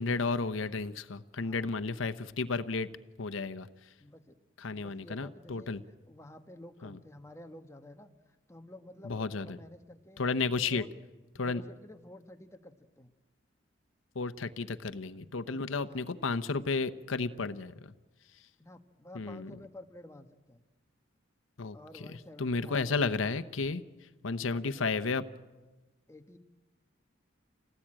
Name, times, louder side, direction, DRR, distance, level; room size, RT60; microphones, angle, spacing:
voice 1, 0.0-2.9 3.2-3.7 4.6-5.8 6.8-7.0 9.0-9.5 10.2-10.8 11.3-11.6 14.1-17.9 19.1-19.5 21.6-22.0 22.4-23.8 24.2-25.2, left 4 dB, 85° left, 10 dB, 0.8 m, -32 dB
voice 2, 1.4-1.7 4.0-4.4 4.7-5.8 6.1-10.2 10.7-10.9 11.3-13.1 15.5-16.1 18.6-20.6 21.7-23.0 24.4-24.9 26.1-26.4, left 1 dB, 15° left, 7 dB, 1.2 m, -51 dB
27.0 x 18.0 x 8.9 m, 1.2 s
head